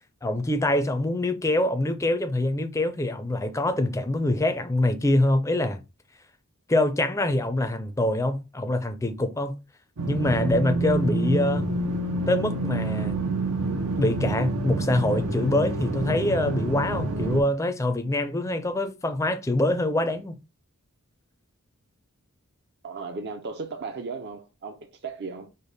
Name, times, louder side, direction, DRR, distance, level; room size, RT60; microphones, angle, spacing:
voice 1, 0.2-5.8 6.7-9.6 10.1-11.7 12.3-13.2 14.0-20.3, left 1 dB, 15° left, 0.4 m, -25 dB
sound 1, 10.0-17.4, right 2 dB, 85° right, 0.8 m, -27 dB
voice 2, 22.8-25.5, right 4 dB, 50° right, 0.5 m, -36 dB
5.1 x 2.1 x 3.9 m
head